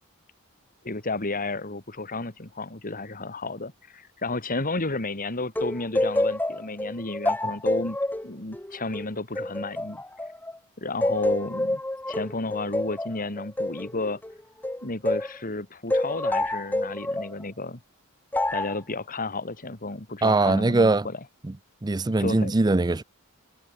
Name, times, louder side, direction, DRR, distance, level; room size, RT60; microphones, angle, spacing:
voice 1, 0.8-8.0 8.2-10.0 10.8-11.8 12.1-14.2 14.8-17.8 18.5-21.2 22.2-22.5, left 3 dB, 40° left, 2.6 m, -32 dB
sound 1, 5.5-10.6 11.0-15.4 15.9-17.3 18.3-18.8, left 1 dB, 10° left, 1.0 m, -28 dB
voice 2, 20.2-21.1 21.4-21.5 21.8-23.0, right 2 dB, 20° right, 0.5 m, -21 dB
head